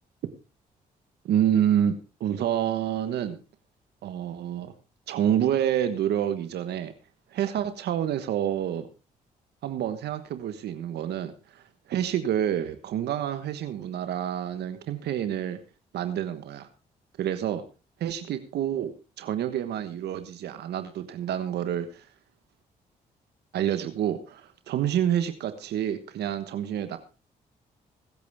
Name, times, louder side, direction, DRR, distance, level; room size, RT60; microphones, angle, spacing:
voice 1, 1.2-3.4 4.0-4.7 5.1-6.9 7.3-8.9 9.6-11.6 11.9-15.6 15.9-16.7 17.2-17.6 18.0-22.1 23.5-27.0, right 10 dB, 75° right, 10 dB, 1.3 m, -28 dB
22.5 x 8.5 x 3.5 m, 0.31 s
supercardioid pair, 50°, 17 cm